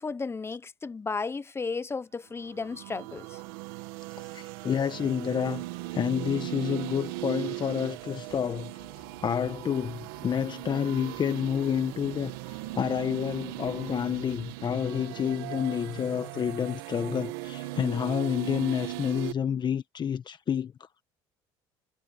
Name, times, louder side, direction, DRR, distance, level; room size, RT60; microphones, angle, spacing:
voice 1, 0.0-3.4, left 4 dB, 20° left, 1.0 m, -34 dB
sound 1, 2.4-19.3, right 18 dB, 90° right, 1.8 m, -38 dB
voice 2, 4.2-5.6 5.9-8.8 9.2-20.7, left 8 dB, 40° left, 1.2 m, -29 dB
sound 2, 8.3-15.0, left 30 dB, 85° left, 5.3 m, -59 dB
supercardioid pair, 90°, 12 cm